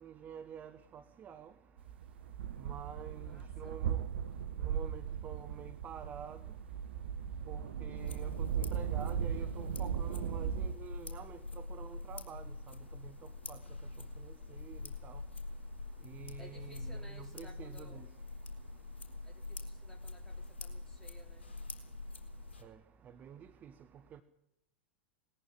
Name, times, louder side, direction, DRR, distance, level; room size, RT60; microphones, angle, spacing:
voice 1, 0.0-1.5 2.6-4.0 4.6-6.4 7.5-12.8 13.0-13.1 13.5-13.6 14.2-14.3 14.7-14.8 15.0-15.2 16.0-18.1 22.6-22.8 23.2-23.7 24.1-24.2, right 8 dB, 25° right, 9 dB, 1.0 m, -48 dB
sound 1, 1.8-10.7, right 8 dB, 60° right, 1.0 m, -37 dB
voice 2, 3.0-3.8 13.4-13.5 14.0-18.1 19.2-21.5, right 1 dB, 5° left, 4 dB, 4.0 m, -61 dB
sound 2, 5.9-19.5, equal, 85° right, 1.7 m, -58 dB
sound 3, 7.9-22.6, left 2 dB, 65° left, 3.6 m, -45 dB
19.5 x 14.5 x 10.0 m, 0.82 s
figure-of-eight pair, 95°, 6 cm